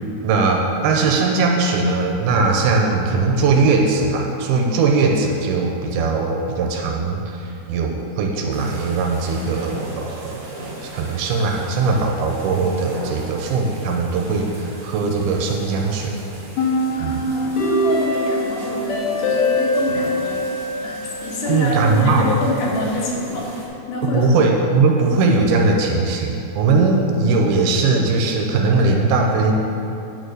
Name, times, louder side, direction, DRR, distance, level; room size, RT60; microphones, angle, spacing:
voice 1, 0.2-10.4 10.8-16.1 17.0-17.2 21.5-22.3 24.1-29.5, right 3 dB, 80° right, 1 dB, 2.4 m, -19 dB
sound 1, 8.5-23.7, right 2 dB, 50° right, 1.1 m, -38 dB
sound 2, 16.6-21.6, left 1 dB, 65° left, 1.9 m, -22 dB
voice 2, 17.0-20.5 20.8-24.2, left 2 dB, 85° left, -4 dB, 3.5 m, -26 dB
9.3 x 4.6 x 6.4 m, 2.8 s
omnidirectional pair, 4.7 m